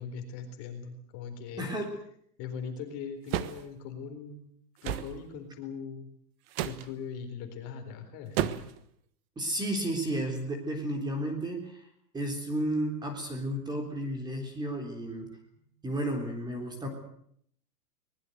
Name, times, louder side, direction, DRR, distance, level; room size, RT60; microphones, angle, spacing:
voice 1, 0.0-1.7 2.4-4.5 4.8-6.1 6.6-8.6 15.5-15.7, left 6 dB, 30° left, 6 dB, 4.1 m, -40 dB
voice 2, 1.6-1.9 9.4-11.9 12.1-15.3 15.8-16.9, right 1 dB, 10° right, 3 dB, 3.7 m, -32 dB
sound 1, 3.3-3.6 4.8-5.1 6.5-6.9 8.4-8.8, right 12 dB, 35° right, 1.4 m, -31 dB
23.5 x 20.5 x 8.1 m, 0.68 s
supercardioid pair, 160°, 49 cm